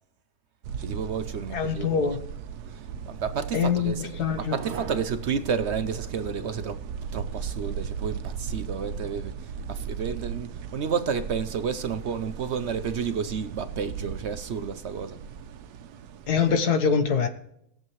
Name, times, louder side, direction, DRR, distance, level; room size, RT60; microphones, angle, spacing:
sound 1, 0.6-16.6, right 7 dB, 85° right, 1.2 m, -37 dB
voice 1, 0.8-2.2 2.7-6.8 7.1-15.2, right 6 dB, 60° right, 0.8 m, -31 dB
voice 2, 1.5-2.2 3.5-4.5 16.3-17.3, left 6 dB, 85° left, 1.7 m, -24 dB
20.0 x 7.5 x 3.1 m
omnidirectional pair, 1.7 m